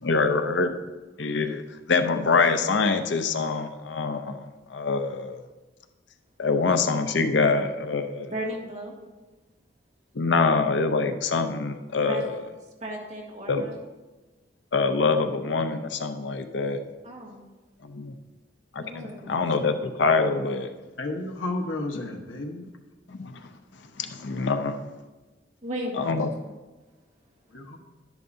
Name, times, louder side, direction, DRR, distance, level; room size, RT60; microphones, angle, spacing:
voice 1, 0.0-0.7 1.2-1.6 1.9-5.4 6.4-8.3 10.2-12.4 13.5-13.6 14.7-16.8 17.8-18.1 18.7-20.7 23.1-23.5 24.0-24.8 26.0-26.3, left 4 dB, 65° left, 8 dB, 0.6 m, -25 dB
voice 2, 8.3-8.9 12.1-12.2 12.8-13.8 17.0-17.4 18.8-19.6 25.6-26.3, right 1 dB, 35° right, -2 dB, 1.7 m, -35 dB
voice 3, 21.0-22.6 27.5-27.8, left 2 dB, 85° left, 2 dB, 1.2 m, -32 dB
11.5 x 10.5 x 2.7 m, 1.2 s
head